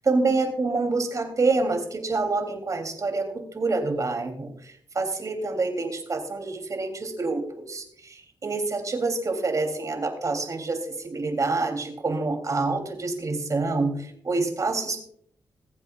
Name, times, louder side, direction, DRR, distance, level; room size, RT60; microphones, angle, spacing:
voice 1, 0.0-15.0, right 3 dB, 45° right, 4 dB, 3.0 m, -27 dB
21.5 x 8.0 x 2.4 m, 0.65 s
cardioid pair, 75°, 8 cm